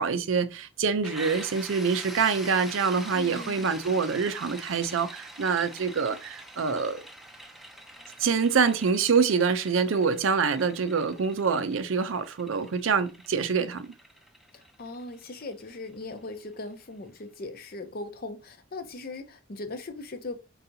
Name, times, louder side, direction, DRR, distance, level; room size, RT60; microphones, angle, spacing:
voice 1, 0.0-7.0 8.2-13.9, right 5 dB, 90° right, 0.5 m, -26 dB
sound 1, 1.0-16.6, right 1 dB, ahead, 0.5 m, -45 dB
voice 2, 3.1-3.7 14.5-20.4, left 2 dB, 50° left, 0.7 m, -39 dB
4.6 x 4.1 x 2.7 m
head